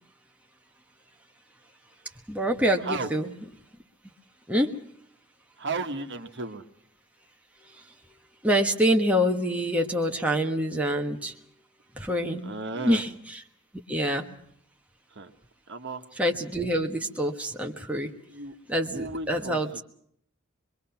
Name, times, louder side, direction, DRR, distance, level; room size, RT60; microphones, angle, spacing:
voice 1, 2.3-3.3 4.5-4.7 7.7-7.8 8.4-11.3 11.9-13.4 13.9-14.4 16.1-18.1 18.7-19.8, equal, 5° right, 1 dB, 1.3 m, -26 dB
voice 2, 5.6-6.6 12.4-13.0 15.1-15.3 15.7-16.1 18.3-18.5 18.9-19.6, right 3 dB, 60° right, 6 dB, 1.5 m, -34 dB
25.0 x 22.5 x 5.9 m, 0.67 s
head